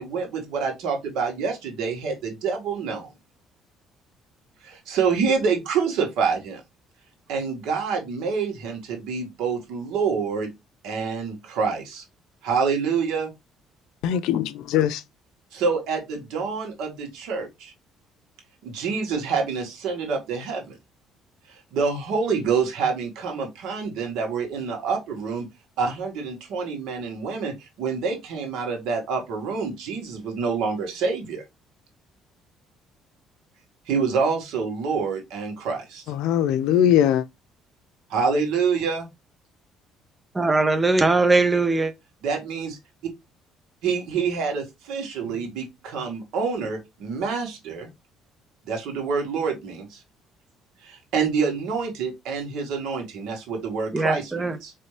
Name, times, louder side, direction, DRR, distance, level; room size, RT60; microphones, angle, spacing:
voice 1, 0.0-3.1 4.6-6.6 7.3-10.5 10.8-12.0 12.4-13.3 15.5-17.7 18.6-20.7 21.5-25.5 25.8-31.4 33.9-36.0 38.1-39.1 42.2-42.8 43.8-47.9 48.7-50.0 50.8-54.7, right 5 dB, 80° right, 1.8 m, -27 dB
voice 2, 14.0-14.9 36.1-37.2, left 10 dB, 85° left, 0.5 m, -20 dB
voice 3, 40.3-41.9 53.9-54.6, right 3 dB, 15° right, 0.5 m, -20 dB
4.4 x 3.2 x 3.3 m
cardioid pair, 160°, 0 cm